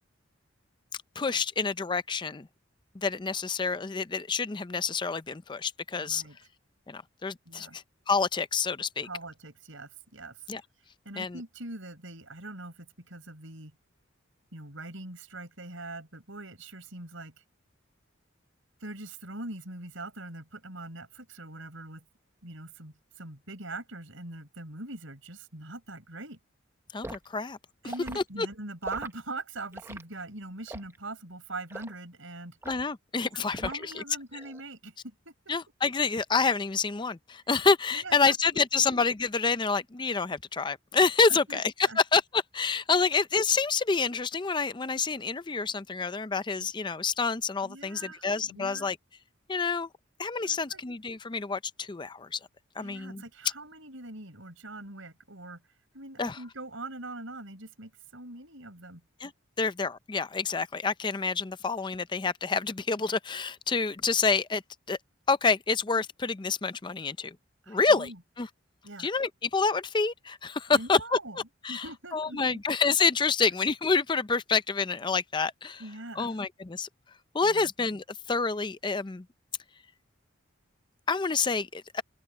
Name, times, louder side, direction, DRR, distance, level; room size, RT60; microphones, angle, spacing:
voice 1, 1.2-2.5 3.0-6.2 6.9-9.1 10.5-10.6 11.2-11.4 26.9-27.6 28.2-28.5 32.7-34.0 35.5-49.0 49.5-49.9 50.2-52.4 52.8-53.2 56.2-56.4 59.2-59.3 59.6-64.6 64.9-65.0 65.3-67.4 67.7-68.1 68.4-68.5 69.0-71.2 71.6-71.8 72.1-75.8 76.2-76.9 77.3-79.2 81.1-82.0, left 4 dB, 25° left, 0.5 m, -28 dB
voice 2, 6.0-6.4 7.5-7.8 9.0-10.4 11.1-13.7 14.5-17.3 18.8-22.0 22.4-26.4 27.8-32.6 33.3-35.3 37.9-38.8 41.3-42.0 42.8-42.9 47.6-48.9 50.4-50.8 52.8-55.6 55.9-59.0 67.6-68.2 68.8-69.1 70.7-71.4 71.7-72.6 75.8-76.3 77.4-77.7, right 2 dB, 75° right, 5.2 m, -42 dB
Liquid, 27.0-27.2 27.9-28.2 28.8-29.1 29.7-30.0 30.7-31.0 31.7-31.9 32.6-32.9 33.6-34.0 34.3-34.6, right 1 dB, 15° right, 0.8 m, -41 dB
open air
head